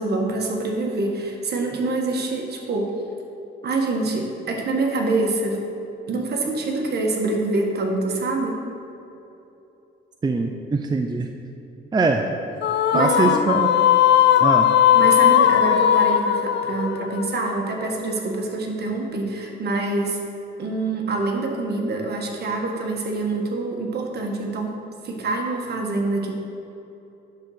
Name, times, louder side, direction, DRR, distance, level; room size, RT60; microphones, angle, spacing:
voice 1, 0.0-2.9 3.6-5.6 6.1-8.6 12.9-13.4 14.9-20.2 20.6-24.7 25.0-26.4, right 2 dB, 55° right, 1 dB, 1.4 m, -25 dB
voice 2, 10.2-11.3 11.9-12.2 12.9-13.7 14.4-14.7, right 3 dB, 20° right, 4 dB, 0.5 m, -22 dB
sound 1, 12.6-18.0, left 10 dB, 60° left, 0.4 m, -18 dB
10.5 x 4.0 x 6.5 m, 2.9 s
cardioid pair, 90°, 20 cm